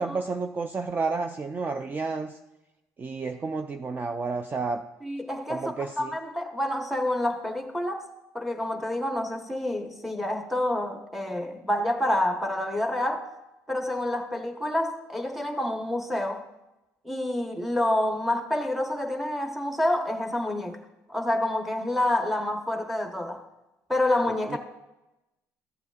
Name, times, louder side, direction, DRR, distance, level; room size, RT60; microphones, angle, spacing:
voice 1, 0.0-2.4 3.0-4.8 5.5-6.1 24.5-24.6, right 4 dB, 25° right, 0.4 m, -31 dB
voice 2, 5.0-8.0 8.3-13.3 13.7-16.4 17.0-20.8 21.1-23.4 23.9-24.6, left 1 dB, ahead, 1.0 m, -28 dB
14.5 x 7.8 x 2.4 m
cardioid pair, 100°, 7 cm